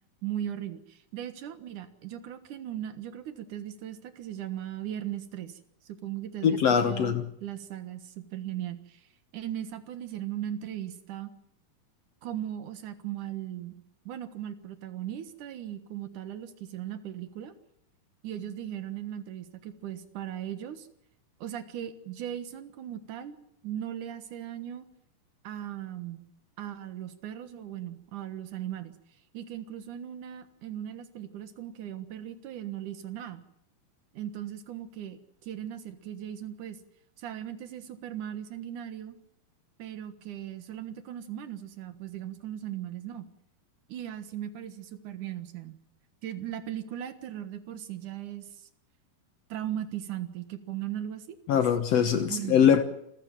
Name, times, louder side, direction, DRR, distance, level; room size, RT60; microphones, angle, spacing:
voice 1, 0.2-5.6 5.9-6.6 6.8-7.1 7.4-9.1 9.3-11.3 12.2-13.7 14.1-17.5 18.2-20.9 21.4-23.4 23.6-24.9 25.4-26.3 26.6-28.9 29.3-33.4 34.1-36.8 37.2-39.1 39.8-43.3 43.9-45.8 46.2-48.5 49.5-51.4 52.3-52.6, right 11 dB, 65° right, 2.8 m, -38 dB
voice 2, 6.4-7.2 51.5-52.8, left 8 dB, 60° left, 1.8 m, -22 dB
27.5 x 15.0 x 7.5 m
omnidirectional pair, 4.1 m